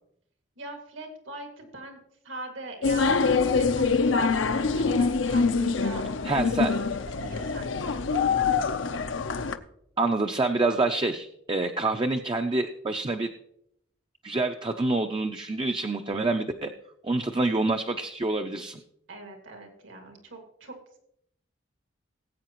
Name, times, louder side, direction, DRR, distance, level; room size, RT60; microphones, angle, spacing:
voice 1, 0.6-2.0 2.2-6.0 6.7-6.8 7.2-8.0 19.1-21.0, right 2 dB, 80° right, 3 dB, 2.2 m, -42 dB
sound 1, 2.8-9.6, left 4 dB, 75° left, 0.6 m, -25 dB
voice 2, 6.2-6.8 10.0-13.3 14.2-16.7 17.0-18.8, right 2 dB, 25° right, 5 dB, 0.5 m, -27 dB
19.0 x 8.4 x 3.0 m, 0.75 s
head